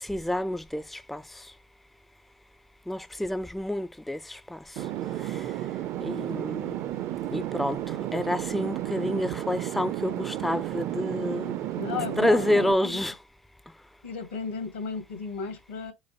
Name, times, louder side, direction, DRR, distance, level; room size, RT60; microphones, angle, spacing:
voice 1, 0.1-0.8 1.1-1.2 2.9-4.2 6.0-6.7 7.3-7.8 8.1-11.6 12.2-13.1, left 1 dB, ahead, 0.3 m, -28 dB
sound 1, 4.8-12.7, right 13 dB, 55° right, 0.5 m, -32 dB
voice 2, 11.8-13.1 14.0-15.9, left 5 dB, 80° left, 1.8 m, -35 dB
6.0 x 2.0 x 3.0 m
hypercardioid pair, 75°, 6 cm